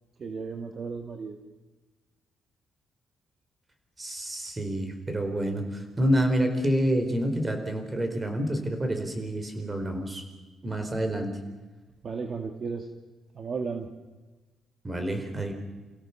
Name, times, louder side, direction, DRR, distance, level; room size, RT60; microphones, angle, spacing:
voice 1, 0.2-1.4 12.0-12.9 13.3-13.9, right 5 dB, 45° right, 5 dB, 2.0 m, -34 dB
voice 2, 4.0-10.2 10.6-11.3 14.8-15.5, equal, 20° right, 6 dB, 4.3 m, -28 dB
29.0 x 16.5 x 7.1 m, 1.2 s
cardioid pair, 105°, 0 cm